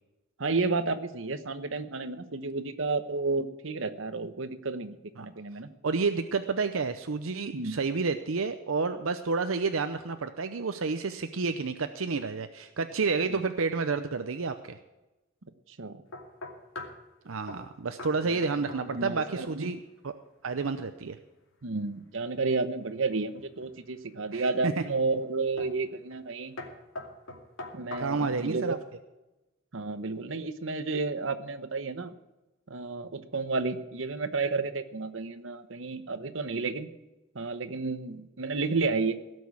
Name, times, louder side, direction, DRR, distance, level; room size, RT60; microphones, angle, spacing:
voice 1, 0.4-5.7 7.5-7.8 15.8-16.0 18.9-19.7 21.6-26.5 27.7-28.8 29.7-32.1 32.7-36.9 37.3-39.2, right 3 dB, 70° right, 10 dB, 1.0 m, -31 dB
voice 2, 5.8-14.8 17.3-20.1 20.4-21.2 24.3-24.7 28.0-28.8, right 4 dB, 85° right, 9 dB, 0.7 m, -30 dB
sound 1, 16.1-17.0 17.5-17.7 18.0-18.2 18.4-19.1 19.4-19.8 23.1-23.8 24.4-24.8 25.6-25.8 26.1-26.3 26.6-28.4, left 2 dB, 80° left, 2.6 m, -42 dB
17.0 x 6.3 x 8.5 m, 1.0 s
head